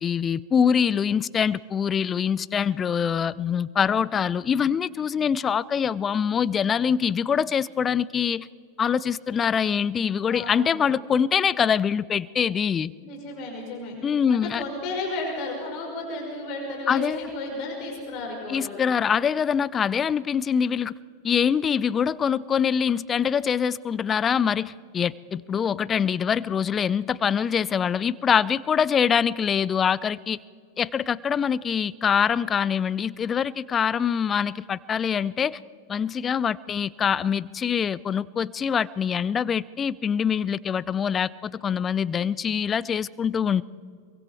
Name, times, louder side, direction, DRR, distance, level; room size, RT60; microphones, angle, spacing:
voice 1, 0.0-8.5 8.8-12.9 14.0-14.6 16.9-17.2 18.5-21.0 21.2-30.4 30.8-35.6 35.9-43.6, left 7 dB, 20° left, 21 dB, 0.5 m, -24 dB
voice 2, 10.3-10.8 13.0-13.9 14.3-18.8, left 2 dB, 40° left, 0 dB, 5.7 m, -33 dB
24.5 x 23.5 x 4.6 m, 2.1 s
figure-of-eight pair, 90°, 0 cm